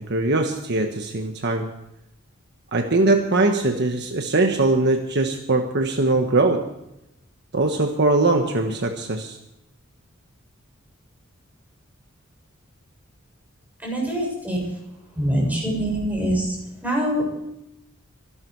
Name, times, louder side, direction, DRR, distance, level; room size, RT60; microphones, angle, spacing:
voice 1, 0.0-1.7 2.7-6.7 7.5-9.4, right 2 dB, 55° right, 4 dB, 1.3 m, -21 dB
voice 2, 13.8-14.6 15.2-17.3, equal, 10° right, -2 dB, 7.3 m, -24 dB
24.5 x 12.0 x 4.7 m, 0.86 s
head